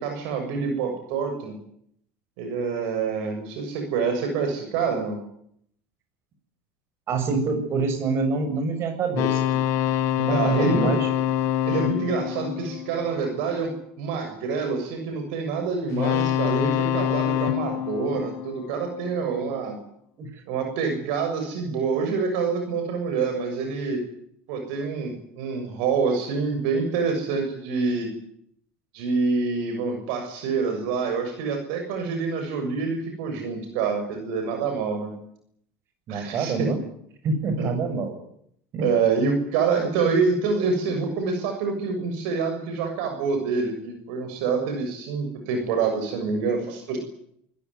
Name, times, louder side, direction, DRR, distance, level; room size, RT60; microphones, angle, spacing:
voice 1, 0.0-1.5 2.4-5.2 10.3-10.9 11.7-13.7 14.0-19.8 20.5-24.0 24.5-28.1 28.9-35.1 36.1-36.7 37.6-37.7 38.8-47.0, right 5 dB, 75° right, 5 dB, 6.8 m, -26 dB
voice 2, 7.1-9.6 10.2-11.1 20.2-20.4 36.1-36.8 37.2-38.1 38.7-38.9, right 4 dB, 45° right, 6 dB, 7.2 m, -26 dB
sound 1, 9.2-13.6 15.9-19.2, left 11 dB, 60° left, 1.7 m, -26 dB
27.0 x 16.5 x 9.8 m, 0.72 s
supercardioid pair, 95°, 6 cm